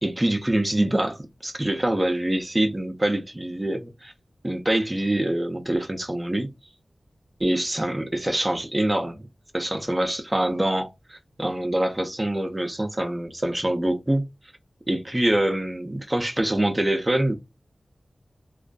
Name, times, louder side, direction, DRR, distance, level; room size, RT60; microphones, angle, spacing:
voice 1, 0.0-4.1 4.4-6.5 7.4-9.3 9.5-14.3 14.9-17.4, right 1 dB, 20° right, 0.4 m, -25 dB
2.4 x 2.2 x 2.3 m
wide cardioid pair, 95°, 0 cm